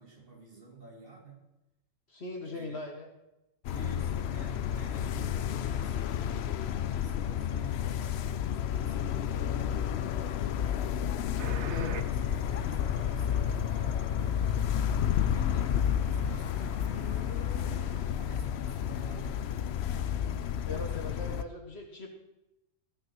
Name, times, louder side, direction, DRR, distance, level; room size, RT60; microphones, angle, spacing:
voice 1, 0.0-1.4 2.4-2.8 3.7-11.1 11.4-12.2 12.5-14.0 15.1-21.1, right 4 dB, 40° right, 0 dB, 2.4 m, -50 dB
voice 2, 2.1-3.1 11.7-12.0 20.6-22.1, left 2 dB, 45° left, 3 dB, 1.5 m, -39 dB
sound 1, 3.6-21.4, left 9 dB, 65° left, 0.6 m, -31 dB
sound 2, 11.4-18.1, right 8 dB, 55° right, 1.0 m, -48 dB
15.0 x 6.4 x 6.0 m, 0.95 s
omnidirectional pair, 1.6 m